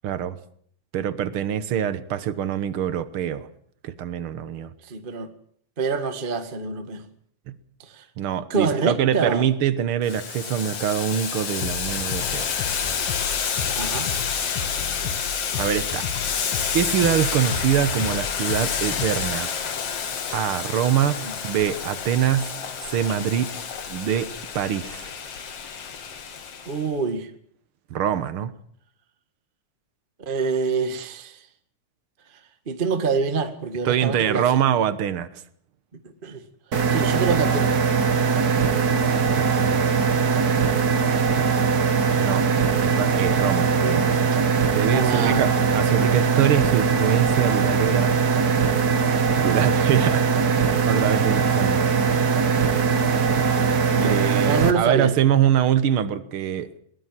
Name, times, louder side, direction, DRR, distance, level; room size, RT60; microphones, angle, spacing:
voice 1, 0.0-0.4 0.9-3.5 3.8-4.7 7.5-7.6 8.2-12.5 15.6-16.1 16.7-19.5 20.3-22.5 22.9-23.6 23.9-25.1 27.9-28.5 33.8-35.4 39.2-39.8 42.2-42.4 42.8-44.4 44.7-48.1 49.4-50.3 50.6-52.1 54.0-56.7, right 9 dB, 65° right, 13 dB, 1.3 m, -24 dB
voice 2, 4.8-5.3 5.8-7.0 7.8-8.0 8.5-9.5 13.7-14.1 21.2-21.3 26.6-27.3 30.2-31.4 32.6-34.5 36.2-36.4 36.9-37.7 43.8-44.1 44.9-45.5 45.9-46.0 53.9-55.1, right 4 dB, 25° right, 8 dB, 1.2 m, -26 dB
Boiling, 10.0-26.8, left 7 dB, 50° left, 2.7 m, -29 dB
sound 1, 11.6-19.4, left 7 dB, 85° left, 3.4 m, -33 dB
sound 2, 36.7-54.7, right 6 dB, 45° right, 1.3 m, -21 dB
22.5 x 19.0 x 7.5 m, 0.62 s
omnidirectional pair, 3.9 m